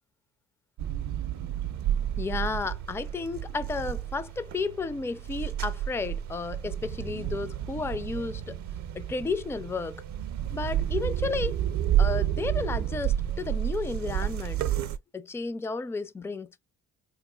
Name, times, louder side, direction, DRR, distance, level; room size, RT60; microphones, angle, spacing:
sound 1, 0.8-15.0, right 10 dB, 70° right, 0.6 m, -30 dB
voice 1, 2.2-8.6 8.9-10.0 10.5-11.6 12.0-14.6 15.1-16.6, left 4 dB, 10° left, 0.3 m, -32 dB
3.6 x 3.0 x 2.2 m
cardioid pair, 90°, 30 cm